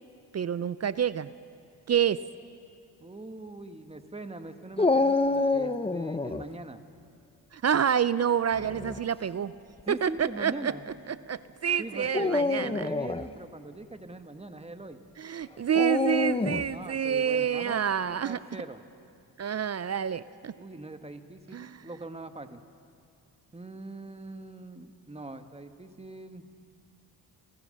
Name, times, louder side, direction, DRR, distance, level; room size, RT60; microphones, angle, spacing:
voice 1, 0.3-1.3 1.9-2.2 7.5-9.5 9.9-10.7 11.3-12.8 15.2-18.4 19.4-20.5 21.5-21.8, right 8 dB, 40° right, 16 dB, 0.5 m, -28 dB
voice 2, 3.0-6.8 9.9-10.8 11.8-15.0 16.7-18.8 20.6-22.6 23.5-26.5, right 2 dB, 15° right, 8 dB, 1.3 m, -42 dB
Dog, 4.8-6.4 8.5-9.0 9.8-9.9 12.0-13.3 15.7-16.7, left 3 dB, 15° left, 0.6 m, -27 dB
30.0 x 14.0 x 6.5 m, 2.4 s
cardioid pair, 80°, 42 cm